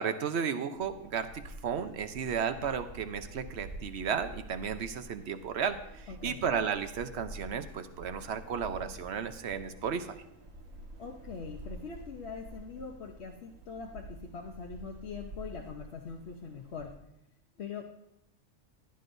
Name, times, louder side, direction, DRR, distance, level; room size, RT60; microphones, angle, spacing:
voice 1, 0.0-10.2, right 7 dB, 60° right, 10 dB, 1.0 m, -34 dB
sound 1, 0.7-17.0, right 1 dB, 75° right, 1.8 m, -48 dB
voice 2, 6.1-6.4 11.0-17.0 17.6-17.9, left 5 dB, 55° left, 1 dB, 1.0 m, -42 dB
15.5 x 11.5 x 2.6 m, 0.82 s
omnidirectional pair, 1.4 m